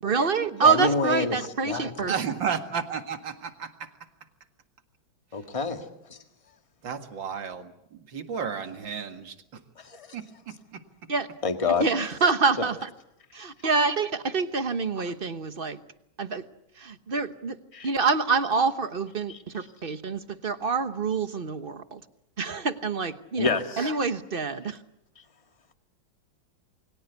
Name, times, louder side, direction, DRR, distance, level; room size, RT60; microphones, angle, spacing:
voice 1, 0.0-2.2 11.1-11.3 11.8-12.9 13.6-15.8 16.2-16.4 16.8-17.6 17.8-22.0 22.4-24.8, right 4 dB, 35° right, 11 dB, 1.0 m, -26 dB
voice 2, 0.7-1.4 1.6-2.1 5.3-5.8 6.1-6.2 9.8-10.1 11.4-11.8 12.6-12.7 17.7-17.9 23.4-23.9, left 4 dB, 15° left, 6 dB, 1.7 m, -27 dB
voice 3, 2.1-3.9 6.8-9.3 10.1-10.6, right 7 dB, 65° right, 7 dB, 2.6 m, -33 dB
29.0 x 23.0 x 8.2 m, 0.81 s
omnidirectional pair, 2.2 m